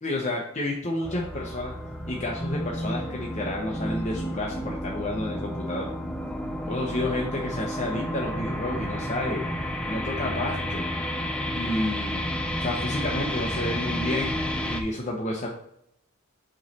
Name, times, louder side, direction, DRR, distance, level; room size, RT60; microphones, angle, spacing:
voice 1, 0.0-1.7 2.1-5.9 6.7-9.4 9.9-10.9 11.5-12.3 12.6-14.4 14.6-15.5, left 1 dB, 30° left, -2 dB, 0.8 m, -30 dB
sound 1, 1.0-14.8, equal, 5° left, 0.4 m, -31 dB
7.8 x 3.1 x 4.1 m, 0.78 s
head